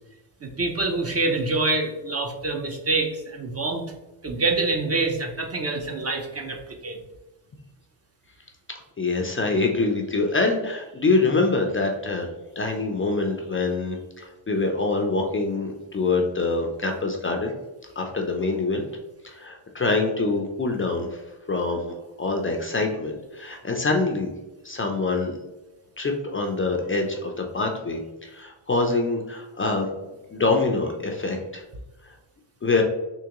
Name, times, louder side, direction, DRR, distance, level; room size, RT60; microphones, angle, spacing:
voice 1, 0.4-3.8 4.2-7.0 11.3-11.4, right 3 dB, 30° right, 3 dB, 0.5 m, -26 dB
voice 2, 9.0-12.3 12.6-17.5 18.0-18.9 19.2-21.2 21.5-24.3 24.6-25.4 26.0-29.9 30.3-31.6 32.0-32.1 32.6-32.8, left 3 dB, 25° left, 2 dB, 0.4 m, -25 dB
3.6 x 2.9 x 2.9 m, 1.0 s
cardioid pair, 85°, 50 cm